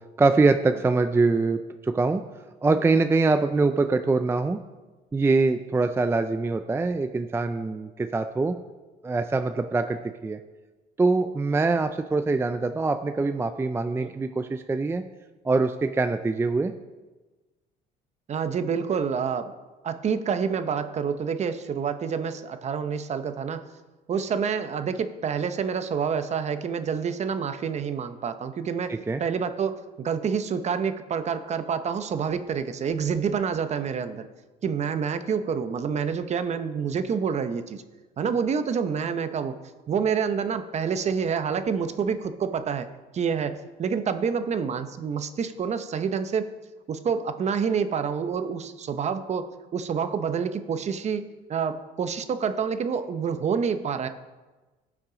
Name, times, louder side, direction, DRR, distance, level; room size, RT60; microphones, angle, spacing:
voice 1, 0.2-2.2 2.6-4.6 5.1-8.5 9.0-10.0 10.2-10.4 11.0-15.0 15.4-16.7 28.9-29.2, right 3 dB, 15° right, 8 dB, 0.4 m, -23 dB
voice 2, 18.3-19.5 19.8-23.6 24.1-28.9 29.2-34.3 34.6-37.8 38.2-39.6 39.9-42.9 43.1-46.5 46.9-51.2 51.5-54.1, right 6 dB, 40° right, 10 dB, 0.8 m, -28 dB
17.5 x 6.0 x 3.9 m, 1.2 s
cardioid pair, 110°, 17 cm